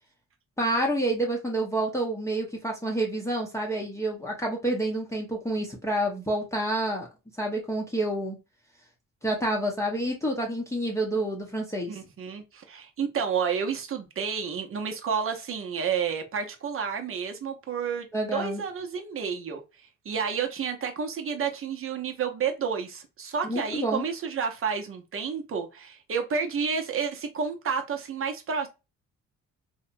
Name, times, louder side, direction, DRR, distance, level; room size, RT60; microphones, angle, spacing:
voice 1, 0.6-7.1 7.4-8.4 9.2-12.0 18.1-18.6 23.4-24.0, right 1 dB, 10° left, 0.7 m, -28 dB
voice 2, 11.9-19.6 20.0-28.7, right 6 dB, 45° right, 0.7 m, -30 dB
2.8 x 2.1 x 2.5 m
cardioid pair, 90°, 30 cm